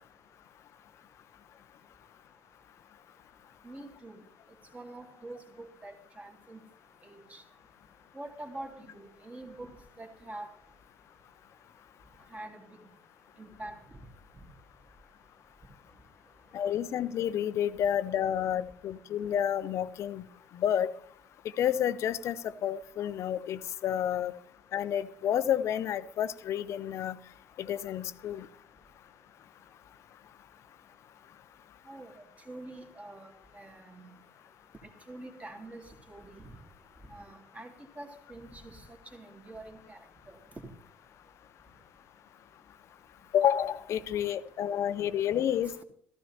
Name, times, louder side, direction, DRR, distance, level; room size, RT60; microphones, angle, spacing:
voice 1, 3.6-4.2 4.7-6.6 7.0-7.4 8.1-9.7 10.0-10.5 12.3-12.7 13.4-13.7 31.9-34.0 34.8-36.5 37.1-38.8 39.1-40.0 40.3-40.4 40.6-40.7, right 2 dB, 20° right, 3 dB, 2.3 m, -45 dB
voice 2, 16.5-20.2 20.6-20.9 21.6-24.3 24.7-27.2 27.6-28.5 43.3-45.8, left 10 dB, 45° left, 15 dB, 0.6 m, -30 dB
15.0 x 14.5 x 2.8 m, 0.63 s
figure-of-eight pair, 55°, 7 cm